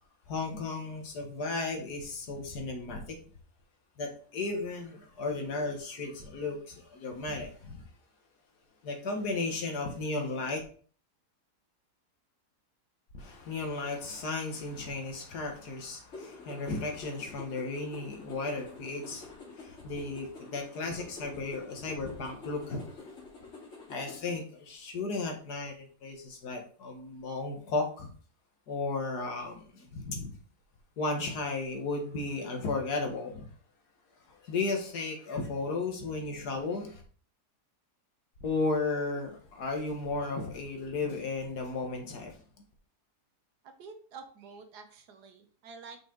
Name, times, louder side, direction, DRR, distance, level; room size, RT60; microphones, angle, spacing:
voice 1, 0.3-3.2 4.0-7.8 8.8-10.6 13.1-23.3 23.9-28.1 28.7-30.3 31.0-33.5 34.3-37.0 38.4-42.7, left 3 dB, 75° left, 3 dB, 1.9 m, -34 dB
sound 1, 16.1-24.4, left 4 dB, 45° left, 2.4 m, -48 dB
voice 2, 43.6-46.0, right 5 dB, 85° right, 5 dB, 1.6 m, -48 dB
5.6 x 4.8 x 3.8 m, 0.43 s
omnidirectional pair, 1.7 m